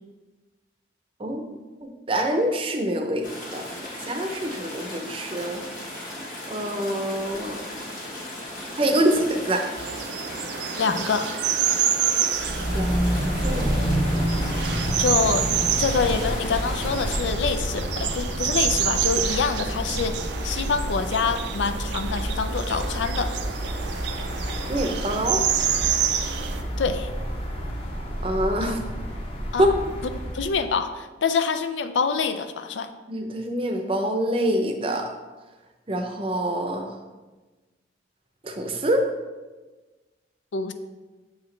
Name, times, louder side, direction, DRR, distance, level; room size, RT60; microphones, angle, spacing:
voice 1, 1.8-3.2 3.5-3.6 4.0-5.6 6.5-7.6 8.8-9.7 12.7-13.7 24.7-25.4 28.2-28.8 29.6-29.7 33.1-35.1 35.9-36.9 38.4-39.0, right 1 dB, 30° right, 4 dB, 0.6 m, -25 dB
sound 1, 3.2-17.2, left 1 dB, 50° left, 1.4 m, -37 dB
sound 2, 9.8-26.6, right 9 dB, 70° right, 0.4 m, -28 dB
voice 2, 10.8-11.3 15.0-15.5 15.8-23.4 26.8-27.1 28.6-28.8 29.5-29.7 30.3-32.9 40.5-40.7, left 5 dB, 90° left, 9 dB, 0.5 m, -26 dB
sound 3, 12.3-30.6, equal, 30° left, 1.0 m, -29 dB
7.1 x 4.8 x 3.2 m, 1.3 s
head